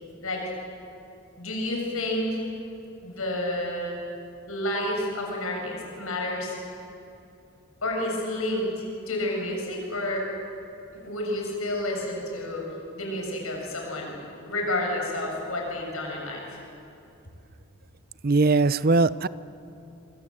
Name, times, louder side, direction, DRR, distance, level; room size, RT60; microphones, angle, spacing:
voice 1, 1.4-2.4 3.0-4.0 4.5-6.5 7.8-10.3 11.0-12.6 13.0-14.2 14.4-16.5, left 1 dB, 75° left, 0 dB, 7.4 m, -30 dB
voice 2, 18.2-19.3, right 3 dB, 45° right, 16 dB, 0.6 m, -20 dB
26.5 x 25.5 x 7.9 m, 2.7 s
head